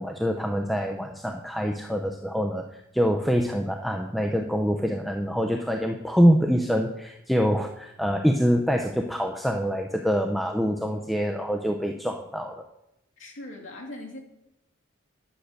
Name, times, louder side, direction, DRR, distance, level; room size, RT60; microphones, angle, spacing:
voice 1, 0.0-12.7, equal, ahead, 3 dB, 0.5 m, -25 dB
voice 2, 13.2-14.2, left 1 dB, 70° left, -2 dB, 2.6 m, -40 dB
10.5 x 6.6 x 6.4 m, 0.86 s
head